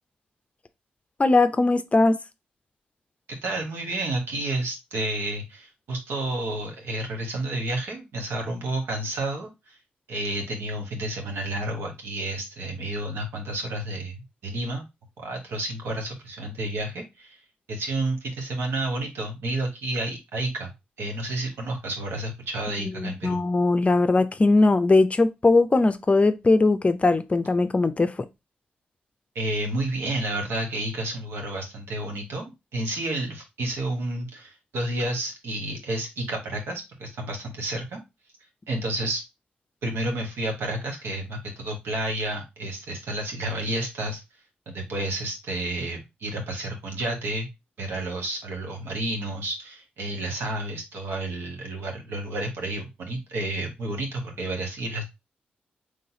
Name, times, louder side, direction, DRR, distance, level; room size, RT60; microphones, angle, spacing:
voice 1, 1.2-2.1 22.8-28.1, left 3 dB, 30° left, 0.5 m, -20 dB
voice 2, 3.4-9.8 10.1-14.8 15.2-17.4 17.7-20.7 21.0-23.4 29.3-38.0 38.7-39.2 39.8-44.2 44.7-47.5 47.8-55.1, right 1 dB, 75° right, 1.2 m, -30 dB
3.9 x 3.2 x 2.7 m
supercardioid pair, 45°, 4 cm